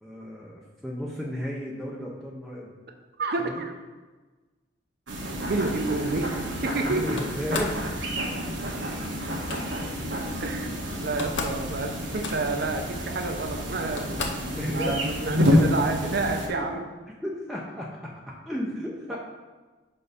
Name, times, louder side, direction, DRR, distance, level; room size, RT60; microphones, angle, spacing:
voice 1, 0.0-2.7 3.4-3.5 6.8-7.9 14.6-15.0 16.5-16.6 17.2-17.9 18.5-19.2, equal, ahead, -4 dB, 0.6 m, -33 dB
voice 2, 3.2-3.7 5.5-7.2 10.4-16.8, right 3 dB, 60° right, 5 dB, 0.7 m, -29 dB
sound 1, 5.1-16.5, equal, 80° right, 1.3 m, -29 dB
Slam, 7.2-7.8 9.2-9.6 10.7-10.8 11.0-11.6 11.9-12.6 13.4-13.5 14.0-14.5, left 3 dB, 80° left, 0.7 m, -34 dB
5.8 x 4.4 x 5.0 m, 1.3 s
head